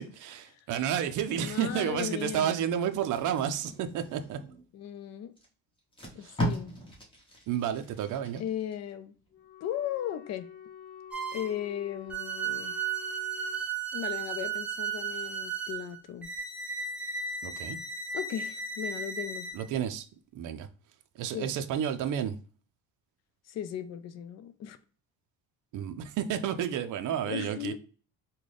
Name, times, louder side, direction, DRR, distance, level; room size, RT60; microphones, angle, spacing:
voice 1, 0.0-4.4 6.2-6.4 7.5-8.4 17.4-17.8 19.5-20.0 20.3-20.7 21.2-22.4 25.7-27.7, right 9 dB, 60° right, 0.5 m, -31 dB
voice 2, 1.3-2.6 4.7-5.3 6.1-6.7 8.4-9.2 9.6-10.5 11.3-12.7 13.9-16.3 18.1-19.5 21.3-21.5 23.5-24.8 27.3-27.8, left 10 dB, 50° left, 0.4 m, -36 dB
Packing tape duct tape, 3.0-4.7 5.4-5.5 5.8-8.8 9.2-9.4, equal, 15° left, 1.0 m, -37 dB
Wind instrument woodwind instrument, 9.3-13.7, left 9 dB, 80° left, 0.8 m, -48 dB
sound 1, 11.1-11.6 12.1-19.6, right 5 dB, 5° right, 0.5 m, -35 dB
3.8 x 2.2 x 3.2 m
cardioid pair, 140°, 35 cm